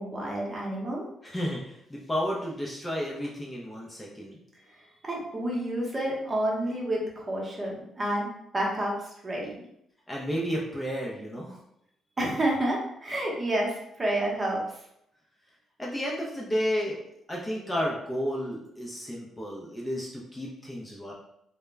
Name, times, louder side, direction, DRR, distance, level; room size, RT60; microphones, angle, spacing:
voice 1, 0.0-1.0 5.0-8.3 8.5-9.6 12.2-14.6, right 1 dB, 25° right, -3 dB, 0.8 m, -29 dB
voice 2, 1.2-4.4 10.1-11.6 15.8-17.0 17.3-21.1, equal, 15° left, -3 dB, 0.5 m, -32 dB
2.1 x 2.0 x 3.3 m, 0.76 s
cardioid pair, 90°, 0 cm